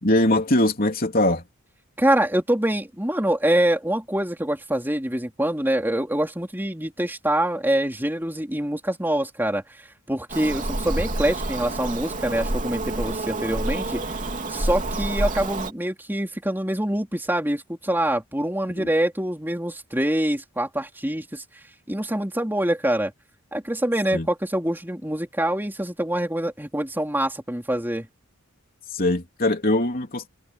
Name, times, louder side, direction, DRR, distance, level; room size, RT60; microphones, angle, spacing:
voice 1, 0.0-1.4 18.7-18.9 24.1-24.3 28.9-30.3, left 1 dB, 40° left, 3.3 m, -21 dB
voice 2, 2.0-14.0 14.5-21.4 21.9-23.1 23.5-28.1, right 1 dB, 10° right, 3.4 m, -25 dB
Bird vocalization bird call bird song, 10.3-15.7, right 2 dB, 35° right, 3.3 m, -28 dB
head